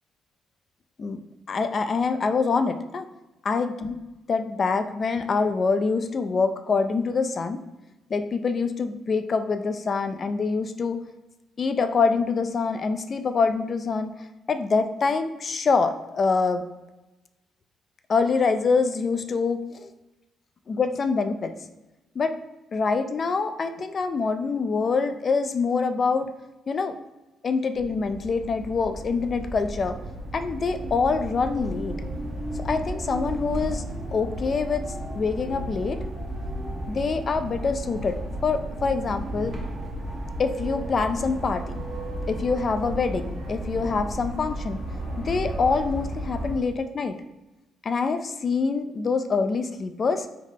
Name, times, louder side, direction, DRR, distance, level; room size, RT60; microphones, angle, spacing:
voice 1, 1.5-3.1 3.4-4.0 4.3-7.6 8.1-11.0 11.6-14.1 14.5-16.6 18.1-19.9 20.7-21.5 22.2-22.4 22.7-26.3 26.7-27.0 27.4-30.0 30.3-32.0 32.5-33.8 34.1-34.9 35.1-36.0 36.9-39.6 40.4-41.8 42.3-44.8 45.2-47.2 47.8-50.3, left 4 dB, 45° left, 8 dB, 0.3 m, -25 dB
sound 1, 27.7-46.6, right 1 dB, 45° right, 0.9 m, -33 dB
3.9 x 2.0 x 3.5 m, 1.1 s
cardioid pair, 90°, 0 cm